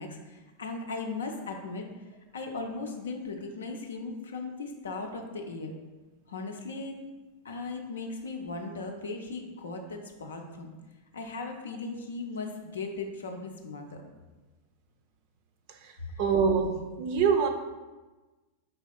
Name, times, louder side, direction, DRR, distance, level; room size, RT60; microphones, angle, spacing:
voice 1, 0.0-1.9 2.3-5.7 6.3-7.0 7.4-10.7 11.1-14.0 16.1-16.2, left 3 dB, 65° left, 4 dB, 0.5 m, -37 dB
voice 2, 16.2-17.5, right 6 dB, 45° right, 6 dB, 0.4 m, -24 dB
4.4 x 3.4 x 2.3 m, 1.2 s
figure-of-eight pair, 90°, 0 cm